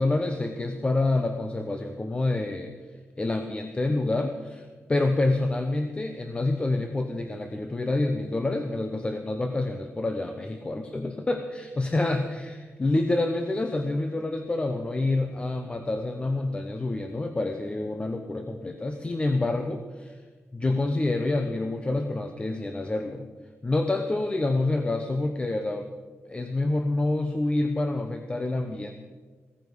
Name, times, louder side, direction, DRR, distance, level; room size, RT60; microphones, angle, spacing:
voice 1, 0.0-2.7 3.2-20.2 20.5-23.3 23.6-25.9 26.2-28.9, left 2 dB, 20° left, 6 dB, 0.9 m, -27 dB
17.0 x 14.5 x 4.9 m, 1.5 s
wide cardioid pair, 135°, 5 cm